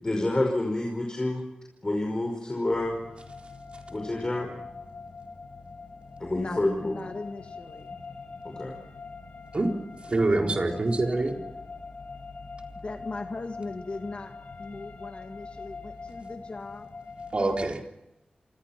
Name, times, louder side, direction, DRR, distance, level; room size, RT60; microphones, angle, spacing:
voice 1, 0.0-1.4 1.8-3.0 3.9-4.5 6.2-7.0 8.4-8.7 10.3-10.6, left 1 dB, 30° left, 1 dB, 5.2 m, -28 dB
sound 1, 2.6-17.7, left 4 dB, 75° left, 5.3 m, -43 dB
voice 2, 6.4-8.0 12.8-16.9, left 3 dB, 45° left, 4 dB, 2.0 m, -38 dB
voice 3, 10.0-11.4 17.3-17.8, right 2 dB, 45° right, 2 dB, 4.1 m, -25 dB
28.0 x 26.5 x 6.0 m, 0.93 s
wide cardioid pair, 120°, 3 cm